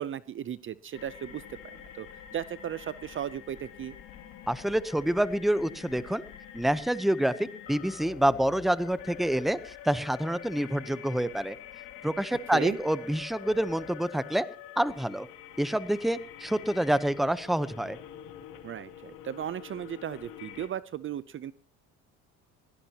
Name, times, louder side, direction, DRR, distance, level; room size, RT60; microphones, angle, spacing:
voice 1, 0.0-2.1 2.3-3.9 12.5-12.8 18.6-21.5, right 10 dB, 40° right, 17 dB, 0.6 m, -36 dB
sound 1, 0.9-20.7, left 10 dB, 75° left, 2.8 m, -46 dB
voice 2, 4.5-6.2 6.5-11.6 12.0-14.5 14.8-15.3 15.6-18.0, right 1 dB, ahead, 15 dB, 0.8 m, -27 dB
20.5 x 17.5 x 2.9 m, 0.37 s
cardioid pair, 105°, 33 cm